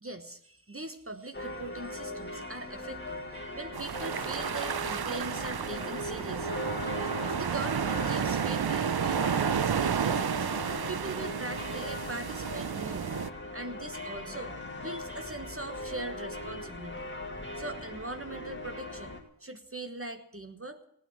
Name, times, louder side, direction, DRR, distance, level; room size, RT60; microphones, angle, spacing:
voice 1, 0.0-6.6 7.2-10.4 10.9-13.1 13.5-14.5 14.8-17.0 17.6-20.8, right 2 dB, 30° right, 8 dB, 1.3 m, -41 dB
sound 1, 1.3-19.2, left 1 dB, 25° left, 2.3 m, -39 dB
sound 2, 3.7-13.3, right 7 dB, 65° right, 0.6 m, -31 dB
17.0 x 9.1 x 8.3 m, 0.70 s
wide cardioid pair, 60°, 41 cm